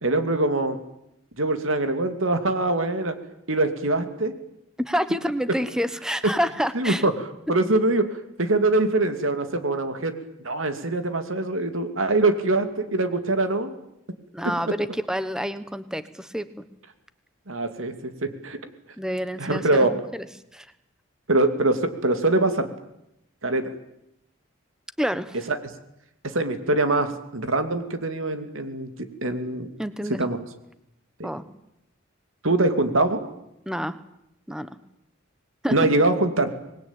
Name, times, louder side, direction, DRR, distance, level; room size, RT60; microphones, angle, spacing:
voice 1, 0.0-0.8 1.4-3.2 3.5-4.3 6.7-10.1 10.4-13.7 17.5-18.6 19.4-19.9 21.3-22.7 23.4-23.7 25.5-25.6 26.2-28.9 29.2-29.7 30.2-30.4 31.2-31.3 32.4-33.3 35.7-36.5, right 2 dB, 80° right, 8 dB, 2.6 m, -23 dB
voice 2, 4.8-7.0 14.3-16.6 19.0-20.3 20.5-20.7 25.0-25.4 29.8-30.2 31.2-31.4 33.7-34.0 34.5-34.7 35.6-35.8, equal, 5° right, 12 dB, 1.2 m, -28 dB
26.0 x 20.5 x 9.0 m, 0.82 s
head